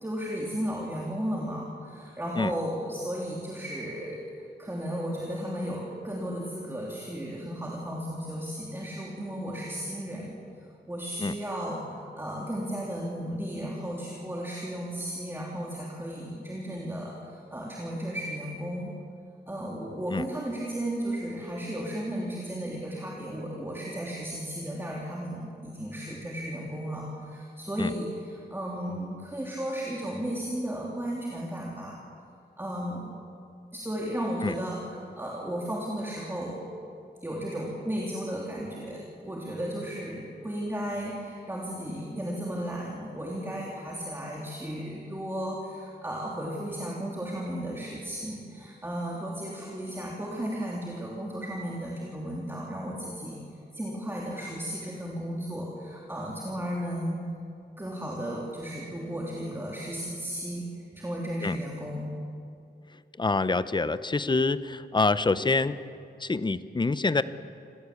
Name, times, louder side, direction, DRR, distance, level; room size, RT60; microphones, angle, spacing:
voice 1, 0.0-4.2 4.6-10.4 10.9-18.9 19.5-32.0 32.6-33.1 33.7-36.6 37.2-53.4 53.7-57.2 57.8-62.1, equal, 15° right, -3 dB, 3.2 m, -34 dB
voice 2, 63.2-65.8 66.2-67.2, left 3 dB, 25° left, 14 dB, 0.8 m, -26 dB
26.5 x 16.5 x 8.5 m, 2.5 s
wide cardioid pair, 110°, 18 cm